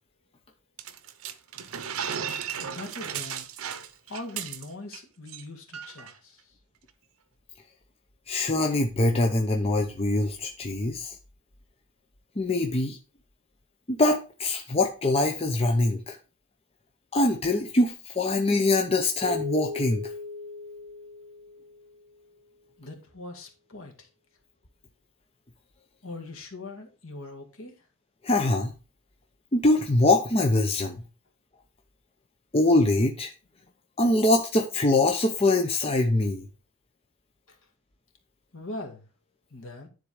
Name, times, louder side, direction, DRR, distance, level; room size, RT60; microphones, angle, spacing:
sound 1, 0.8-5.0 5.3-5.4 5.7-6.1, right 8 dB, 75° right, 0.8 m, -35 dB
voice 1, 2.6-3.5 4.1-6.6 22.8-24.1 26.0-27.7 37.5-37.6 38.5-39.1 39.5-39.9, left 2 dB, 70° left, 1.9 m, -41 dB
voice 2, 8.3-11.1 12.4-13.0 13.9-16.2 17.1-20.0 28.2-28.7 29.5-31.0 32.5-33.3 34.0-36.5, left 2 dB, 25° left, 0.8 m, -23 dB
Keyboard (musical), 19.2-22.2, left 3 dB, 5° left, 1.9 m, -38 dB
10.0 x 3.9 x 4.9 m
head